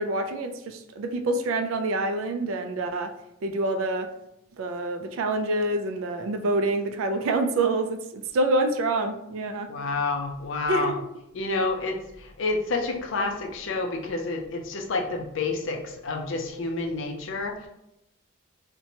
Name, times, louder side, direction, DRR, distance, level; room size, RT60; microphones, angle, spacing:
voice 1, 0.0-3.1 3.4-4.1 4.6-9.7 10.7-11.1 16.8-16.9, right 2 dB, 70° right, 7 dB, 0.3 m, -27 dB
voice 2, 9.7-10.9 11.3-17.7, left 3 dB, 60° left, 2 dB, 0.4 m, -29 dB
2.8 x 2.1 x 2.7 m, 0.84 s
head